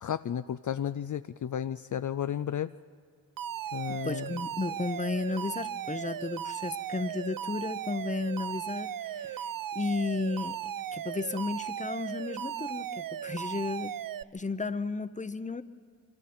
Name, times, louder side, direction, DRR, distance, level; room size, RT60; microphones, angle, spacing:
voice 1, 0.0-2.7 3.7-4.3, left 9 dB, 60° left, 12 dB, 0.4 m, -33 dB
Alarm, 3.4-14.2, right 10 dB, 70° right, 0.5 m, -37 dB
voice 2, 3.9-10.6 10.9-13.9 14.3-15.6, left 3 dB, 20° left, 13 dB, 0.8 m, -33 dB
26.5 x 24.5 x 4.3 m, 2.1 s
wide cardioid pair, 65°, 35 cm